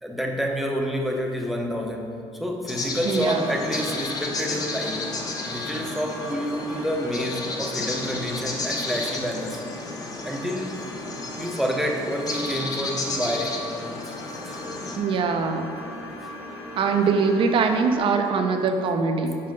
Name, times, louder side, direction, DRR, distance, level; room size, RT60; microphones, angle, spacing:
voice 1, 0.0-5.1 5.5-9.6 10.2-10.8 11.3-13.6 14.0-14.2 14.4-14.6 16.2-16.3, equal, ahead, 1 dB, 0.8 m, -28 dB
sound 1, 2.7-15.0, left 3 dB, 35° left, 0.9 m, -33 dB
voice 2, 3.0-3.4 15.0-15.7 16.8-19.4, right 5 dB, 55° right, 5 dB, 0.7 m, -22 dB
sound 2, 3.2-18.0, left 1 dB, 70° left, 1.2 m, -38 dB
5.5 x 5.5 x 5.2 m, 2.5 s
cardioid pair, 100°, 11 cm